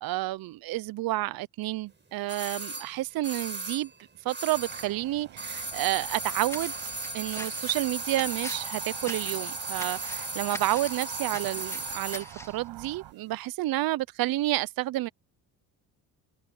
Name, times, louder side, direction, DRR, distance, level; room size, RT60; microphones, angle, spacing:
voice 1, 0.0-3.9 4.2-6.7 7.1-15.1, right 16 dB, 60° right, 0.6 m, -30 dB
sound 1, 2.3-5.0 5.3-12.3 12.6-12.7, right 2 dB, 25° right, 6.5 m, -36 dB
sound 2, 4.5-13.1, right 14 dB, 75° right, 7.3 m, -47 dB
sound 3, 6.5-12.6, left 1 dB, 5° left, 2.4 m, -44 dB
supercardioid pair, 80°, 41 cm